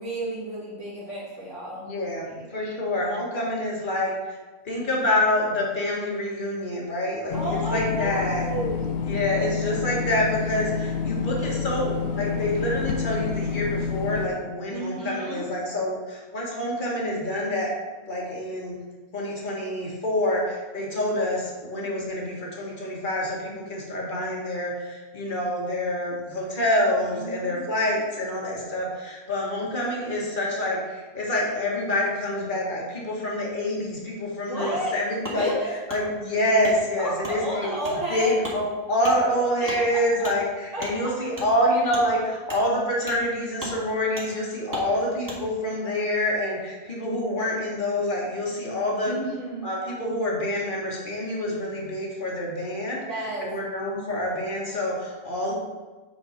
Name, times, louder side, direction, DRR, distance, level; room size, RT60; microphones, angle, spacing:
voice 1, 0.0-1.9 2.2-2.5 7.3-8.8 14.7-15.5 26.6-26.7 27.0-27.6 34.5-35.0 35.2-35.8 37.0-38.4 39.6-40.3 40.7-40.9 49.1-49.7 53.1-53.5, right 1 dB, 55° right, -6 dB, 1.8 m, -32 dB
voice 2, 1.8-4.3 4.6-8.4 9.0-17.7 18.1-18.8 19.1-37.8 38.1-49.2 49.6-53.0 53.4-55.5, left 1 dB, 35° left, -3 dB, 1.8 m, -27 dB
sound 1, 7.3-14.3, left 6 dB, 90° left, 1.2 m, -28 dB
Wood, 35.2-35.4 35.9-36.0 36.6-36.8 37.2-37.4 37.8-38.0 38.4-38.6 39.0-39.2 39.6-39.8 40.2-40.4 40.8-40.9 41.3-41.5 41.9-42.0 42.5-42.6 43.1-43.2 43.6-43.8 44.2-44.3 44.7-44.9 45.2-45.4, right 1 dB, 15° right, 1.8 m, -35 dB
8.5 x 4.6 x 4.3 m, 1.3 s
omnidirectional pair, 1.5 m